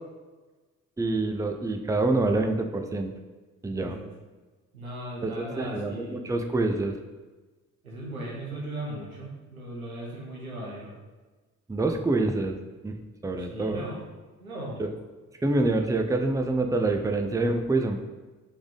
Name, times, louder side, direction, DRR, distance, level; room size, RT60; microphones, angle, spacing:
voice 1, 1.0-3.1 3.6-4.0 5.2-6.9 11.7-12.6 12.8-13.0 13.2-13.8 14.8-14.9 15.4-18.0, right 2 dB, 10° right, 5 dB, 0.6 m, -26 dB
voice 2, 4.7-6.3 7.8-10.9 13.4-14.0 14.4-14.8, right 1 dB, 90° right, -4 dB, 1.1 m, -37 dB
4.9 x 3.7 x 5.3 m, 1.2 s
figure-of-eight pair, 40°, 41 cm